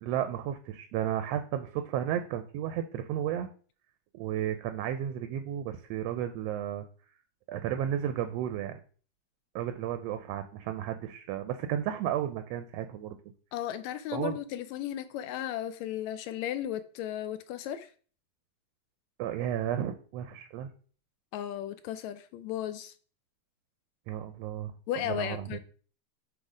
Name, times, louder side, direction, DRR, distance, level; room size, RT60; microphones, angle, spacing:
voice 1, 0.0-3.5 4.1-6.8 7.5-8.8 9.5-13.2 14.1-14.4 19.2-20.7 24.1-25.6, right 10 dB, 80° right, 1.5 m, -33 dB
voice 2, 13.5-17.9 21.3-22.9 24.9-25.6, left 11 dB, 80° left, 1.8 m, -35 dB
7.7 x 3.3 x 4.9 m
omnidirectional pair, 3.3 m